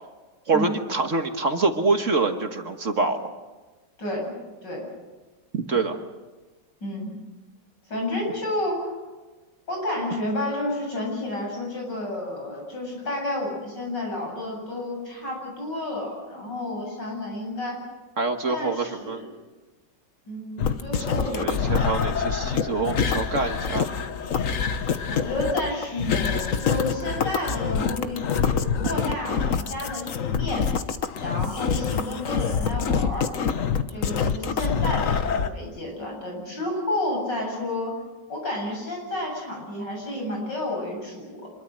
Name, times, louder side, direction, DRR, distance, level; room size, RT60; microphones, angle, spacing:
voice 1, 0.5-3.2 5.5-6.0 18.2-19.2 21.0-23.9, right 3 dB, 45° right, 6 dB, 1.6 m, -25 dB
voice 2, 4.0-4.3 4.6-4.9 6.8-7.1 7.9-9.0 9.7-17.8 18.5-19.3 20.3-21.8 25.1-30.7 31.2-33.3 33.9-37.9 38.3-41.5, left 1 dB, 80° left, 0 dB, 8.6 m, -31 dB
sound 1, 20.6-35.5, left 6 dB, 50° left, 1.4 m, -26 dB
26.5 x 22.5 x 6.5 m, 1.2 s
omnidirectional pair, 1.9 m